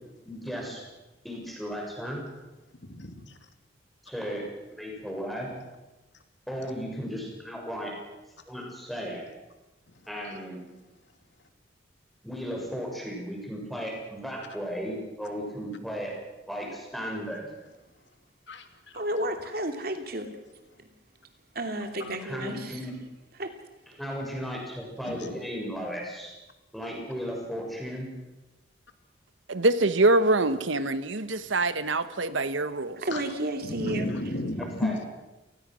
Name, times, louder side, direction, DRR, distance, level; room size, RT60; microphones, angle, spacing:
voice 1, 0.2-0.8 1.2-2.2 4.0-5.5 6.5-7.9 8.5-9.2 10.1-10.6 12.2-16.1 16.5-17.5 22.2-22.9 24.0-26.3 26.7-28.1 34.6-34.9, equal, ahead, -1 dB, 6.8 m, -35 dB
voice 2, 2.8-3.4 6.6-6.7 18.5-19.0 22.0-22.2 25.0-25.3 33.1-33.3 33.6-35.1, left 1 dB, 70° left, 7 dB, 2.6 m, -34 dB
voice 3, 18.9-20.3 20.8-20.9 21.5-22.8 23.4-23.5 33.0-34.1, right 1 dB, 50° right, 6 dB, 2.8 m, -32 dB
voice 4, 29.5-33.0, right 2 dB, 85° right, 12 dB, 1.3 m, -24 dB
28.5 x 19.5 x 6.4 m, 1.1 s
head